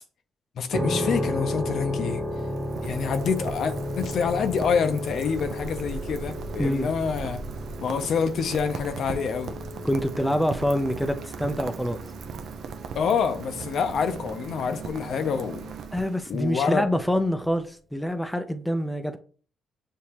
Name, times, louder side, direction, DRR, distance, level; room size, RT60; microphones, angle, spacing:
voice 1, 0.6-2.2 2.8-7.4 7.8-9.5 12.9-15.7 16.3-16.8, left 6 dB, 65° left, 0.6 m, -27 dB
sound 1, 0.7-15.4, left 1 dB, 25° right, 1.4 m, -34 dB
Rain, 1.8-16.6, right 6 dB, 65° right, 0.5 m, -39 dB
voice 2, 9.8-12.0 15.9-19.2, equal, 5° left, 0.5 m, -26 dB
6.7 x 2.7 x 2.9 m
cardioid pair, 90°, 0 cm